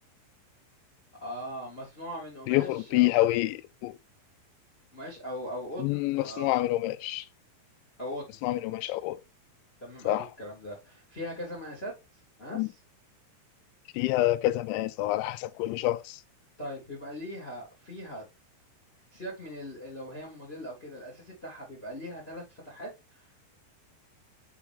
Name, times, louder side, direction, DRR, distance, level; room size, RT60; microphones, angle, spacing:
voice 1, 1.2-3.4 4.9-6.6 8.0-8.4 9.8-11.9 12.4-12.7 16.6-18.2 19.1-23.2, equal, 15° left, 2.3 m, -40 dB
voice 2, 2.5-3.9 5.8-7.3 8.4-9.2 10.1-10.3 12.5-12.7 13.9-16.2, left 17 dB, 80° left, 2.8 m, -27 dB
5.9 x 5.6 x 3.6 m
omnidirectional pair, 5.6 m